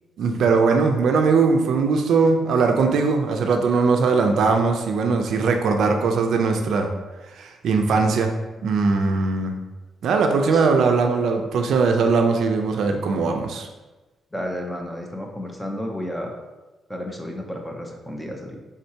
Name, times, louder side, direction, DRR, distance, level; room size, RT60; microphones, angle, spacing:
voice 1, 0.2-6.9 7.4-8.3 8.6-9.6 10.0-13.7, right 4 dB, 70° right, 4 dB, 0.4 m, -20 dB
voice 2, 14.3-16.4 16.9-18.6, equal, 10° left, 1 dB, 0.6 m, -32 dB
4.4 x 3.6 x 2.7 m, 1.1 s
cardioid pair, 135°, 0 cm